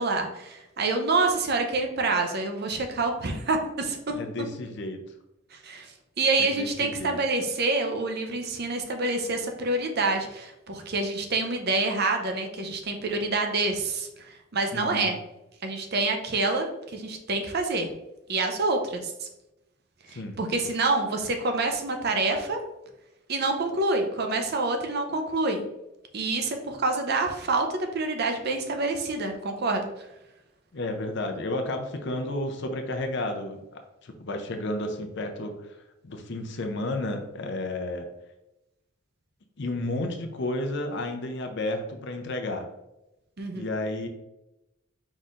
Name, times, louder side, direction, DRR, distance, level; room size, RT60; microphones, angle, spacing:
voice 1, 0.0-4.2 5.5-5.9 6.2-14.1 14.5-15.1 15.6-17.9 18.3-19.3 20.1-22.6 23.3-25.7 26.1-29.9 43.4-43.7, right 3 dB, 50° right, 4 dB, 0.7 m, -27 dB
voice 2, 4.1-5.0 6.4-7.2 14.7-15.1 20.1-20.4 30.7-35.5 36.0-38.1 39.6-42.7 43.5-44.1, left 1 dB, 60° left, 5 dB, 0.6 m, -32 dB
4.9 x 4.2 x 2.5 m, 0.92 s
head